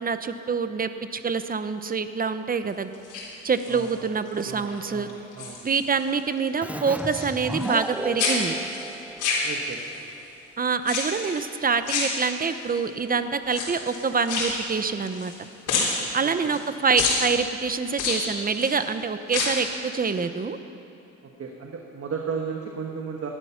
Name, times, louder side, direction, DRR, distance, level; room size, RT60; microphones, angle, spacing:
voice 1, 0.0-2.9 3.4-5.1 5.6-8.6 10.6-15.3 16.1-20.6, right 5 dB, 30° right, 10 dB, 0.9 m, -26 dB
sound 1, 2.9-3.9 4.4-4.8 5.1-6.1 6.4-7.9 8.2-10.0 10.8-11.4 11.9-12.7 13.4-15.4 15.7-16.6 17.0-17.2 17.9-18.8 19.2-19.7 20.1-20.2, left 4 dB, 90° left, 3.6 m, -28 dB
voice 2, 3.7-4.1 4.4-5.6 9.4-9.8 16.2-16.6 21.4-23.3, right 5 dB, 50° right, 1 dB, 1.4 m, -35 dB
Keyboard (musical), 6.6-10.0, right 2 dB, 5° right, 0.3 m, -34 dB
18.5 x 12.0 x 5.8 m, 2.8 s
cardioid pair, 95°, 30 cm